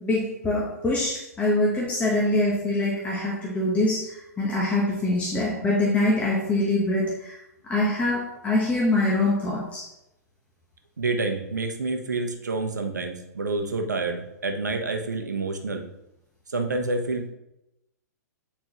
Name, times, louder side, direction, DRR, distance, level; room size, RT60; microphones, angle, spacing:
voice 1, 0.0-4.1 4.4-7.4 7.6-9.8, left 2 dB, 15° left, -4 dB, 1.3 m, -24 dB
voice 2, 11.0-15.8 16.5-17.3, right 3 dB, 85° right, 4 dB, 1.0 m, -28 dB
9.2 x 4.4 x 3.0 m, 0.89 s
hypercardioid pair, 115°, 9 cm